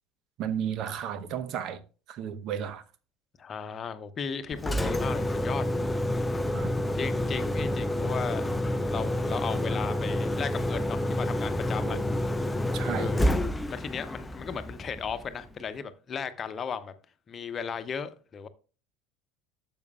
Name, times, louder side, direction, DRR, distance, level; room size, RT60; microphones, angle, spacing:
voice 1, 0.4-1.8 2.1-2.8 6.5-6.7 11.9-12.0 12.7-13.1, right 9 dB, 50° right, 0.9 m, -33 dB
voice 2, 3.4-5.6 7.0-8.4 8.7-12.0 12.8-13.3 13.7-16.9 17.3-18.5, left 6 dB, 35° left, 1.0 m, -36 dB
Engine, 4.5-15.5, left 1 dB, 10° left, 0.6 m, -29 dB
12.0 x 7.7 x 2.3 m
figure-of-eight pair, 65°, 0 cm